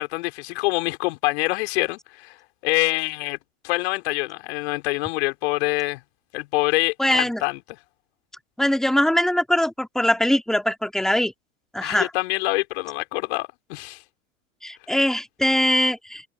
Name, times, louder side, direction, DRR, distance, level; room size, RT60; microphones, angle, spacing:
voice 1, 0.0-2.4 2.6-3.4 3.6-6.0 6.3-7.6 11.8-14.0, left 22 dB, 55° left, 3.9 m, -25 dB
voice 2, 7.0-7.4 8.6-11.3 11.7-12.1 14.6-16.2, left 1 dB, ahead, 2.8 m, -22 dB
figure-of-eight pair, 95°, 39 cm